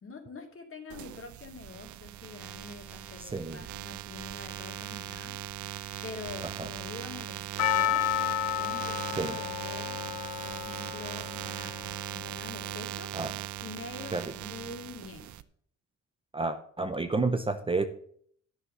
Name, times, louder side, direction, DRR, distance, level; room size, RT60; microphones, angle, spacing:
voice 1, 0.0-8.1 8.6-10.0 10.4-11.8 12.1-13.1 13.6-15.4, left 4 dB, 45° left, 3 dB, 2.4 m, -45 dB
sound 1, 0.9-15.4, right 13 dB, 75° right, 0.6 m, -39 dB
voice 2, 3.2-3.6 6.6-6.7 9.2-9.4 13.1-13.3 14.1-14.3 16.3-17.9, right 3 dB, 20° right, 8 dB, 0.7 m, -30 dB
Percussion, 7.6-12.0 12.2-12.3, left 12 dB, 65° left, 0.6 m, -31 dB
9.7 x 5.9 x 6.6 m, 0.62 s
cardioid pair, 90°, 30 cm